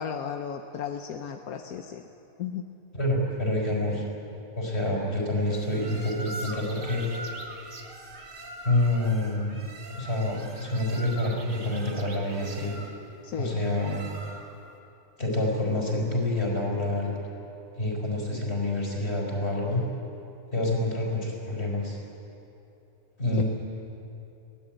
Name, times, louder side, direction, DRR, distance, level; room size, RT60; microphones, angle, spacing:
voice 1, 0.0-2.0 2.4-2.6 13.2-13.6 23.4-23.5, left 8 dB, 80° left, 5 dB, 1.4 m, -34 dB
voice 2, 2.9-4.0 4.6-7.0 8.6-9.6 10.0-12.7 13.4-14.1 15.2-17.2 17.8-19.8 20.5-22.0 23.2-23.4, left 1 dB, 45° left, -1 dB, 5.3 m, -27 dB
sound 1, 5.4-14.7, right 2 dB, 60° right, 2.3 m, -42 dB
23.0 x 17.5 x 9.1 m, 2.9 s
omnidirectional pair, 1.5 m